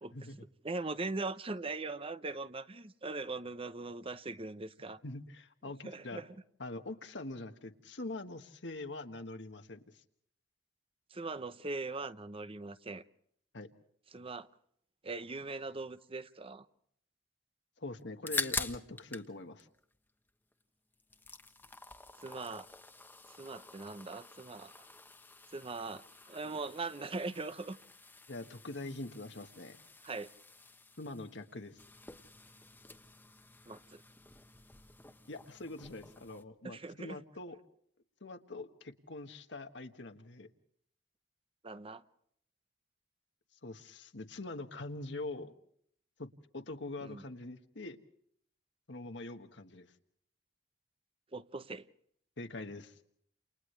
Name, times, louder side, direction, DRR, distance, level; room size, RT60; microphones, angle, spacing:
voice 1, 0.6-5.0 5.8-6.3 11.1-13.0 14.1-14.5 15.0-16.7 22.2-22.7 23.4-24.9 25.5-27.8 30.0-30.3 33.7-34.0 36.6-37.2 41.6-42.0 47.0-47.2 51.3-51.9, right 3 dB, 30° right, 0.8 m, -40 dB
voice 2, 5.0-6.2 6.6-10.0 13.5-13.7 17.8-19.7 28.3-29.8 31.0-31.8 35.3-37.6 38.2-40.5 43.6-45.5 46.2-48.0 48.9-49.9 52.4-53.0, left 2 dB, 70° left, 1.5 m, -44 dB
sound 1, 18.0-19.3 19.6-20.6 20.9-36.4, left 3 dB, 10° left, 1.2 m, -46 dB
30.0 x 29.0 x 3.3 m
head